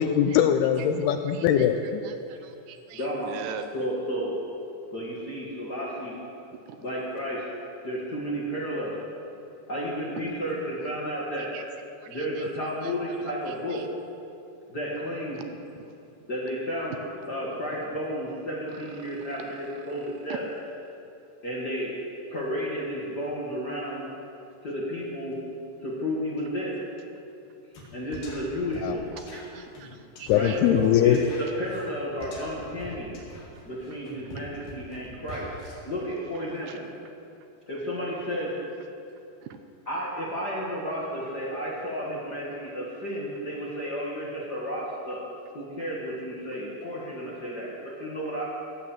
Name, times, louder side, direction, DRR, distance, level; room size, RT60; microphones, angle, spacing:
voice 1, 0.0-2.0 28.8-29.0 30.3-31.2, left 9 dB, 80° left, 7 dB, 2.4 m, -21 dB
voice 2, 1.3-1.7 2.0-3.7 6.7-6.8 11.5-11.6 12.0-12.1 13.7-13.8 15.8-15.9 19.0-19.1 20.3-20.4 29.3-30.6 36.7-36.8 39.4-39.5, right 9 dB, 80° right, 8 dB, 2.6 m, -42 dB
voice 3, 2.9-4.3 4.9-6.2 6.8-7.4 7.8-8.9 9.7-11.5 12.1-13.8 14.7-15.4 16.3-20.4 21.4-22.0 22.3-24.1 24.6-25.4 25.8-26.8 27.9-29.0 30.3-33.1 33.6-35.5 35.8-36.8 37.7-38.5 39.9-45.2 45.5-48.4, equal, 40° left, -6 dB, 1.4 m, -32 dB
sound 1, 27.7-27.9 28.1-35.7, equal, 60° left, 3.9 m, -43 dB
15.5 x 8.5 x 7.4 m, 2.6 s
omnidirectional pair, 4.9 m